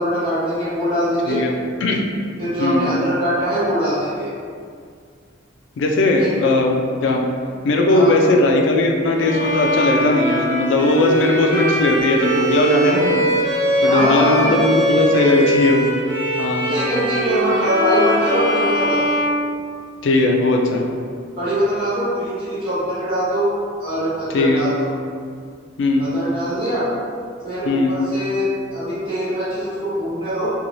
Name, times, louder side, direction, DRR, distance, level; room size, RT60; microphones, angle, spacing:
voice 1, 0.0-1.4 2.4-4.3 6.2-6.3 7.9-8.1 13.8-14.5 16.7-19.1 21.4-23.5 23.8-24.9 26.0-26.9 27.4-30.5, equal, 30° right, -11 dB, 1.0 m, -22 dB
voice 2, 2.6-2.9 5.8-7.3 7.6-13.3 13.8-15.9 16.4-16.7 20.0-20.9 24.3-24.7 25.8-26.1 27.6-28.0, left 2 dB, 75° left, 1 dB, 0.3 m, -18 dB
Bowed string instrument, 9.2-20.2, equal, 60° right, 0.7 m, -21 dB
2.9 x 2.3 x 2.6 m, 2.2 s
head